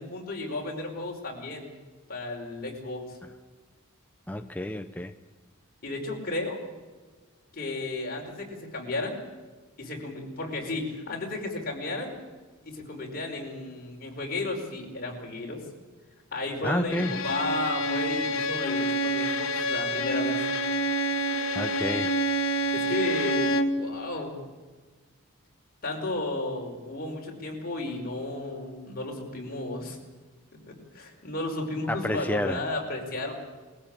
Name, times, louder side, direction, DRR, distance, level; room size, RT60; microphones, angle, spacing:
voice 1, 0.0-1.7 2.1-3.2 5.8-6.6 7.5-9.2 9.8-12.2 12.6-15.6 16.3-20.5 22.7-24.4 25.8-30.0 30.7-33.3, left 2 dB, 45° left, 0 dB, 5.1 m, -33 dB
voice 2, 4.3-5.1 16.6-17.3 21.5-22.2 31.9-32.6, left 1 dB, 10° left, 7 dB, 0.7 m, -30 dB
Bowed string instrument, 16.9-23.8, equal, 85° left, 1.6 m, -27 dB
21.5 x 15.5 x 8.9 m, 1.4 s
head